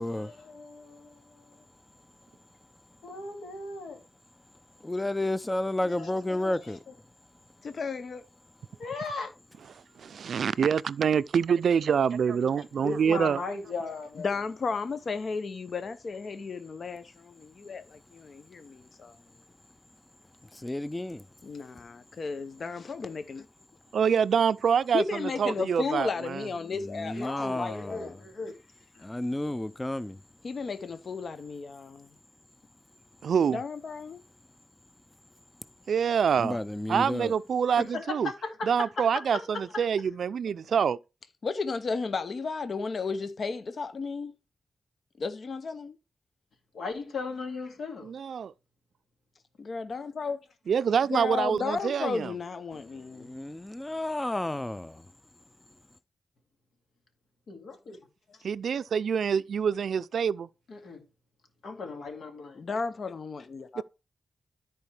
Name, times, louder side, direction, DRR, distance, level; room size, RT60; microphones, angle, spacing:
voice 1, 0.0-1.6 3.0-4.0 5.8-6.9 8.8-9.3 12.7-14.3 27.1-28.5 28.9-29.0 37.8-39.8 46.7-48.1 57.5-58.0 58.3-58.4 60.7-61.0 61.6-62.6, left 3 dB, 85° left, 2.2 m, -37 dB
voice 2, 4.8-6.8 20.5-21.2 26.8-28.1 29.0-30.2 36.4-37.3 53.2-55.0, left 1 dB, 15° left, 0.4 m, -31 dB
voice 3, 7.6-8.2 14.2-19.1 21.4-23.4 24.9-28.2 30.4-32.1 33.5-34.2 41.4-44.3 45.2-45.9 49.6-50.4 51.1-53.3 62.6-63.8, left 4 dB, 60° left, 0.7 m, -34 dB
voice 4, 10.0-13.4 23.9-26.4 33.2-33.6 35.9-36.6 36.9-38.3 38.6-41.0 48.0-48.5 50.7-52.3 58.4-60.5, right 7 dB, 80° right, 0.4 m, -26 dB
13.5 x 4.5 x 3.3 m
cardioid pair, 80°, 0 cm